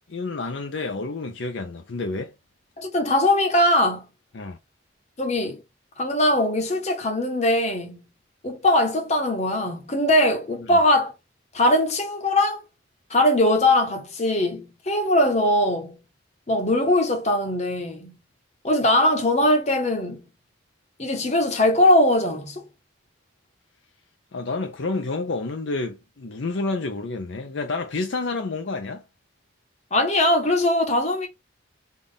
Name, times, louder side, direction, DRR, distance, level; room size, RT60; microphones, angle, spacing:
voice 1, 0.1-2.3 4.3-4.6 10.6-10.8 24.3-29.0, left 3 dB, 60° left, 0.6 m, -29 dB
voice 2, 2.8-4.0 5.2-5.6 6.0-8.0 8.4-11.1 11.5-12.6 13.1-16.0 16.5-18.1 18.6-20.2 21.0-22.6 29.9-31.3, left 1 dB, 35° left, 0.9 m, -21 dB
3.7 x 2.4 x 3.8 m
head